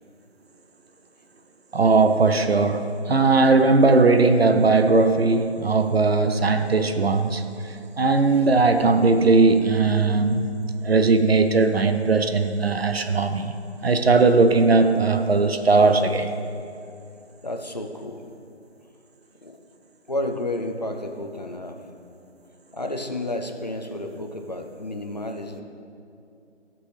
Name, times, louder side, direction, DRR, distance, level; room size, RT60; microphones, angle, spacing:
voice 1, 1.7-10.5 10.8-13.5 13.8-16.3, right 3 dB, 60° right, 8 dB, 0.6 m, -19 dB
voice 2, 17.4-18.2 19.4-19.6 20.1-21.8 22.7-25.6, left 1 dB, 35° left, 4 dB, 0.5 m, -31 dB
13.5 x 6.1 x 3.2 m, 2.6 s
figure-of-eight pair, 175°, 35 cm